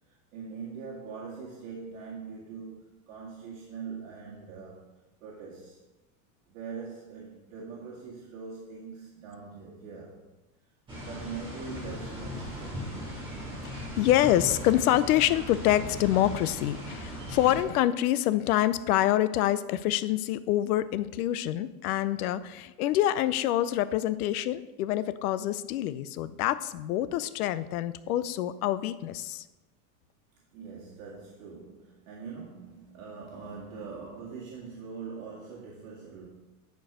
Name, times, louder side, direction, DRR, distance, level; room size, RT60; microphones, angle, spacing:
voice 1, 0.1-4.9 5.2-5.8 6.5-10.3 11.0-12.9 30.5-36.3, right 5 dB, 60° right, -5 dB, 2.0 m, -42 dB
sound 1, 10.9-17.6, equal, 10° right, 2.9 m, -38 dB
voice 2, 13.6-29.4, left 13 dB, 85° left, 15 dB, 0.7 m, -26 dB
10.5 x 4.6 x 6.1 m, 1.1 s
supercardioid pair, 175°, 43 cm